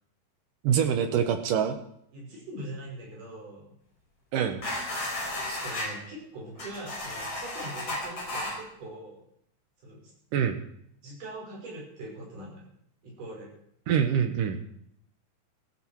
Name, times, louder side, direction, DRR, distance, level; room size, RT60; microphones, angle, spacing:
voice 1, 0.6-1.8 4.3-4.6 5.5-5.6 10.3-10.6 13.9-14.6, right 8 dB, 70° right, 7 dB, 2.1 m, -25 dB
voice 2, 2.1-3.8 5.4-9.3 9.8-10.1 11.0-12.7 13.0-13.6, right 1 dB, 50° right, -3 dB, 7.2 m, -42 dB
sound 1, 4.6-5.9 6.6-8.5, left 1 dB, 30° left, 5.5 m, -33 dB
17.0 x 14.5 x 4.7 m, 0.70 s
omnidirectional pair, 5.0 m